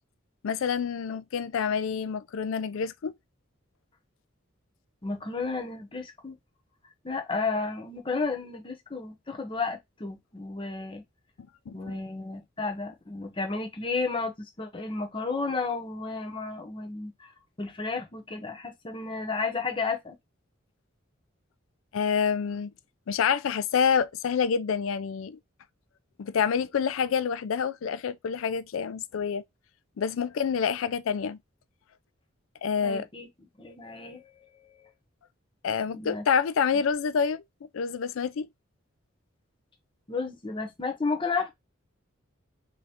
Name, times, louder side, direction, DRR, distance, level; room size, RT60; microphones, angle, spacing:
voice 1, 0.4-3.1 11.7-11.8 21.9-22.7 23.1-25.4 26.2-29.4 30.0-31.4 32.6-33.1 35.6-37.4 37.7-38.5, left 6 dB, 85° left, 0.4 m, -27 dB
voice 2, 5.0-6.4 7.0-11.0 11.7-17.3 17.6-20.2 32.8-33.3 33.6-34.9 35.9-36.2 40.1-41.5, left 4 dB, 25° left, 0.8 m, -32 dB
3.7 x 2.7 x 3.4 m
head